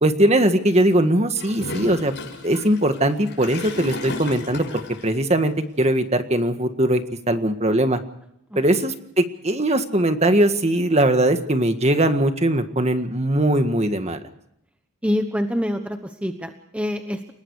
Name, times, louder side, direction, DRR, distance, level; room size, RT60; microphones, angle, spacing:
voice 1, 0.0-2.1 2.4-4.7 5.0-7.0 7.3-8.0 8.5-14.2, right 1 dB, 30° right, 8 dB, 1.7 m, -20 dB
Gurgling / Toilet flush, 1.3-5.1, left 2 dB, 55° left, 6.5 m, -34 dB
voice 2, 15.0-17.3, equal, 5° right, 6 dB, 1.1 m, -26 dB
30.0 x 19.0 x 4.8 m, 0.78 s
head